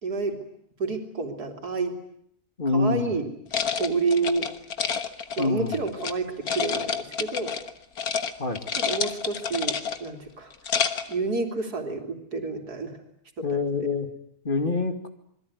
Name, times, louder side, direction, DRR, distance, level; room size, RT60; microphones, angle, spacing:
voice 1, 0.0-0.4 0.8-1.9 2.7-3.3 3.8-4.5 5.4-7.6 8.8-10.5 11.1-13.0 13.4-13.6, right 4 dB, 80° right, 5 dB, 3.7 m, -29 dB
voice 2, 2.6-3.1 5.4-5.8 8.4-8.6 13.4-14.1 14.4-15.1, left 3 dB, 35° left, 7 dB, 2.5 m, -25 dB
sound 1, 3.5-6.1 6.5-7.7 8.0-8.3 8.6-10.1 10.5-11.1, left 6 dB, 75° left, 2.0 m, -28 dB
27.5 x 21.5 x 9.7 m, 0.72 s
omnidirectional pair, 1.6 m